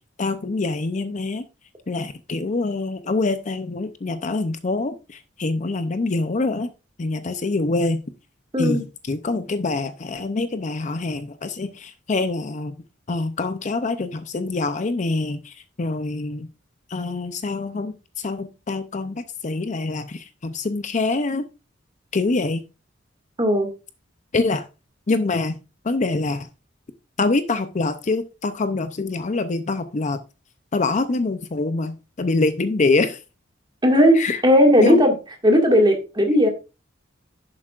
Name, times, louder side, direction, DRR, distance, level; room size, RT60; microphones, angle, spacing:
voice 1, 0.2-1.4 1.9-6.7 7.0-8.0 8.6-8.8 9.1-12.7 13.1-16.5 16.9-21.5 22.1-22.6 24.3-24.7 25.1-25.6 25.8-26.5 27.2-30.2 30.7-33.2 34.2-34.4 34.8-35.0, left 3 dB, 40° left, 11 dB, 0.5 m, -25 dB
voice 2, 23.4-23.7 33.8-35.1 35.4-36.5, equal, 25° right, 3 dB, 1.9 m, -16 dB
11.0 x 7.3 x 2.4 m, 0.30 s
head